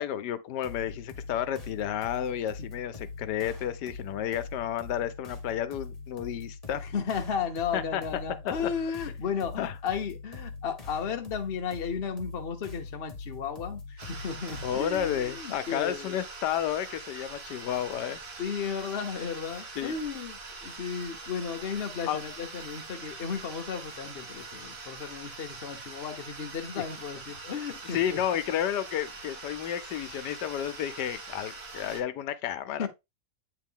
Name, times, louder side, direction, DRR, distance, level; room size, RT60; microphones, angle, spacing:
voice 1, 0.0-6.8 7.7-8.0 9.6-9.7 14.6-18.2 19.8-19.9 22.1-22.2 27.9-32.9, left 10 dB, 85° left, 1.2 m, -31 dB
sound 1, 0.6-15.4, left 4 dB, 25° left, 1.2 m, -43 dB
voice 2, 6.7-16.2 18.4-28.2 32.8-32.9, left 6 dB, 45° left, 0.9 m, -34 dB
sound 2, 14.0-32.0, right 3 dB, 65° right, 2.1 m, -43 dB
8.3 x 3.4 x 3.6 m
omnidirectional pair, 1.8 m